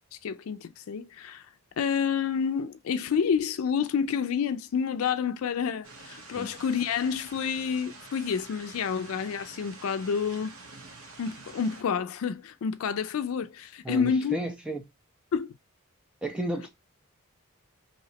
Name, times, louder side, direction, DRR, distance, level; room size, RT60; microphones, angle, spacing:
voice 1, 0.2-1.4 1.8-10.5 11.2-14.4 15.3-15.6, left 6 dB, 75° left, 0.4 m, -29 dB
sound 1, 5.8-11.8, right 3 dB, 80° right, 0.9 m, -47 dB
voice 2, 13.8-14.8 16.2-16.7, right 1 dB, 5° right, 0.5 m, -32 dB
3.0 x 2.8 x 2.7 m
head